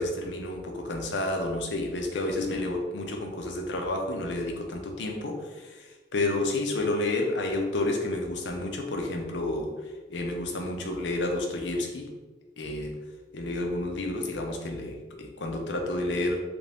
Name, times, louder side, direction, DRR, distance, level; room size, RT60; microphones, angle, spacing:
voice 1, 0.0-9.7 10.1-12.1 12.6-12.9 13.3-16.4, left 2 dB, 85° left, 2 dB, 0.6 m, -30 dB
3.2 x 2.6 x 3.4 m, 1.3 s
head